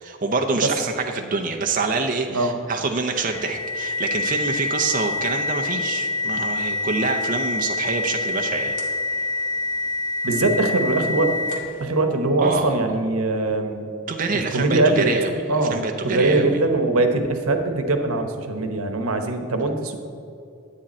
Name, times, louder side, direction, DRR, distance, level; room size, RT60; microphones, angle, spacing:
voice 1, 0.0-8.7 12.4-12.7 14.1-16.6, right 3 dB, 40° right, 3 dB, 0.6 m, -26 dB
voice 2, 2.3-2.6 10.2-11.4 11.8-13.8 14.5-15.1 15.5-20.0, right 2 dB, 90° right, 6 dB, 1.0 m, -22 dB
sound 1, 3.3-11.8, left 3 dB, 35° left, 1.4 m, -26 dB
10.0 x 8.8 x 4.3 m, 2.6 s
head